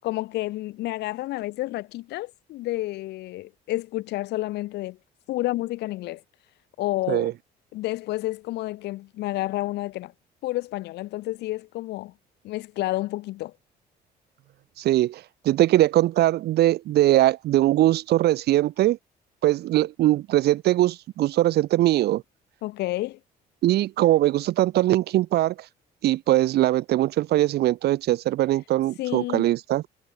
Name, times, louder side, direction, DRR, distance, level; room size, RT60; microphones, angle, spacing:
voice 1, 0.0-5.0 5.3-6.2 6.8-7.3 7.7-10.1 10.4-12.1 12.4-13.5 22.6-23.2 29.0-29.5, left 17 dB, 80° left, 5.8 m, -30 dB
voice 2, 14.8-19.0 19.4-22.2 23.6-25.5 26.0-29.8, right 14 dB, 75° right, 4.1 m, -21 dB
cardioid pair, 110°, 17 cm